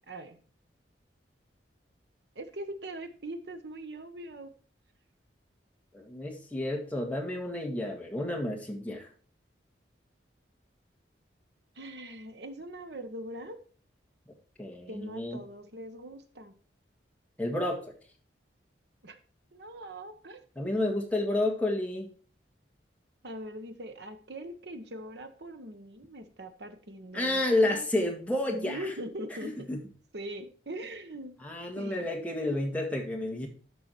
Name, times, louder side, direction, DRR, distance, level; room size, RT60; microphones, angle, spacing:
voice 1, 0.1-0.4 2.3-4.5 11.7-13.6 14.9-16.5 19.0-19.2 19.5-20.4 23.2-27.9 28.5-29.7 30.1-31.3 31.8-32.1, right 1 dB, 65° right, 8 dB, 1.3 m, -41 dB
voice 2, 5.9-9.1 14.6-15.4 17.4-17.9 20.6-22.1 27.1-28.9 29.4-29.8 31.4-33.5, left 1 dB, 10° left, 0 dB, 1.8 m, -30 dB
12.5 x 4.8 x 4.5 m, 0.41 s
head